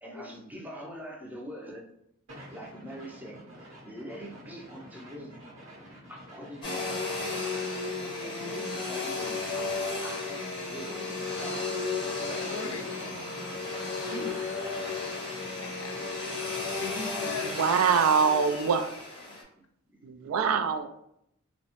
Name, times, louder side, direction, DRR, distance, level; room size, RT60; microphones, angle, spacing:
voice 1, 0.0-1.9 2.5-3.4 3.8-5.4 6.1-7.5 8.2-11.6 12.3-13.2 17.3-17.4 19.9-20.4, equal, 10° right, -1 dB, 0.4 m, -44 dB
sound 1, 2.3-17.7, equal, 65° right, 0.8 m, -48 dB
Domestic sounds home sounds, 6.6-19.4, left 3 dB, 25° left, 0.7 m, -34 dB
voice 2, 12.2-13.1 13.8-14.6 15.5-16.0 16.7-17.6, left 5 dB, 70° left, 5 dB, 0.4 m, -40 dB
voice 3, 17.4-18.9 20.0-20.9, right 6 dB, 85° right, 9 dB, 0.3 m, -24 dB
2.7 x 2.0 x 2.8 m, 0.75 s
head